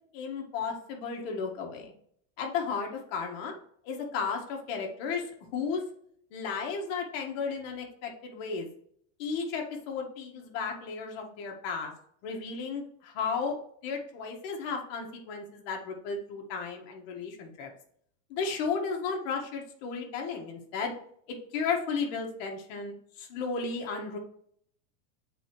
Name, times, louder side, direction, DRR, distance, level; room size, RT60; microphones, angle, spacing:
voice 1, 0.1-1.9 2.4-3.5 3.8-5.8 6.3-8.7 9.2-11.9 12.2-13.5 13.8-17.7 18.3-20.9 21.5-24.2, left 5 dB, 50° left, 2 dB, 1.6 m, -34 dB
7.8 x 4.2 x 3.1 m, 0.66 s
supercardioid pair, 170°, 39 cm